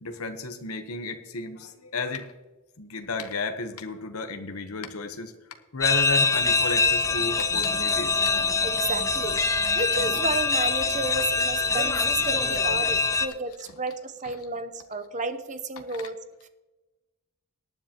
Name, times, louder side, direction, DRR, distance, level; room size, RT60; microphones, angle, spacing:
voice 1, 0.0-2.3 2.8-5.3 5.7-8.2 14.2-14.3, left 3 dB, 80° left, 7 dB, 1.0 m, -32 dB
sound 1, 5.8-13.3, left 4 dB, 15° left, 0.5 m, -24 dB
voice 2, 8.6-9.4 9.7-16.5, right 3 dB, 35° right, 10 dB, 0.8 m, -32 dB
18.5 x 10.0 x 2.9 m, 1.1 s
head